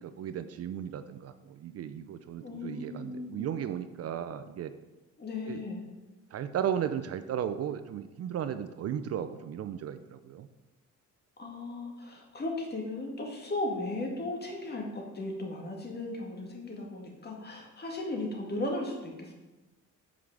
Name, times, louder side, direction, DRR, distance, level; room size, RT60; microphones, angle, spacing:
voice 1, 0.0-4.7 5.5-5.6 6.3-10.5, right 9 dB, 55° right, 11 dB, 0.5 m, -35 dB
voice 2, 2.4-3.5 5.2-5.9 11.4-19.3, left 2 dB, 35° left, 0 dB, 1.9 m, -36 dB
5.9 x 4.8 x 6.0 m, 1.1 s
cardioid pair, 90°, 30 cm